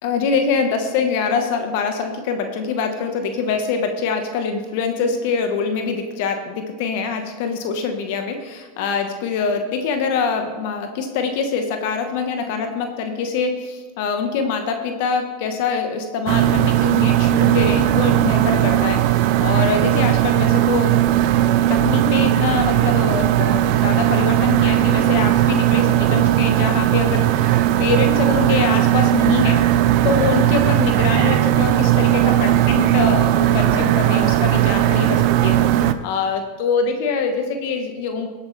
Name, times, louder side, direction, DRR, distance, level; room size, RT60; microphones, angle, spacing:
voice 1, 0.0-20.9 21.7-38.3, left 5 dB, 65° left, 5 dB, 1.2 m, -24 dB
sound 1, 16.3-35.9, right 13 dB, 60° right, 0.6 m, -17 dB
18.0 x 8.1 x 3.3 m, 1.4 s
hypercardioid pair, 100°, 0 cm